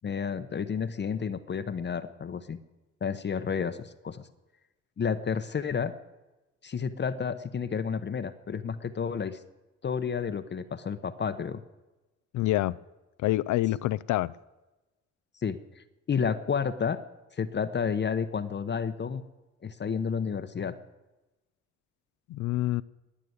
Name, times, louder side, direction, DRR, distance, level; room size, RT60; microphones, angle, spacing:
voice 1, 0.0-2.6 3.0-4.2 5.0-5.9 6.6-9.4 9.8-11.6 15.4-17.0 17.4-19.2 19.6-20.7, left 6 dB, 35° left, 10 dB, 0.8 m, -31 dB
voice 2, 12.3-12.8 13.2-14.3 22.3-22.8, left 16 dB, 75° left, 18 dB, 0.5 m, -26 dB
20.0 x 6.8 x 9.3 m, 1.1 s
cardioid pair, 90°, 30 cm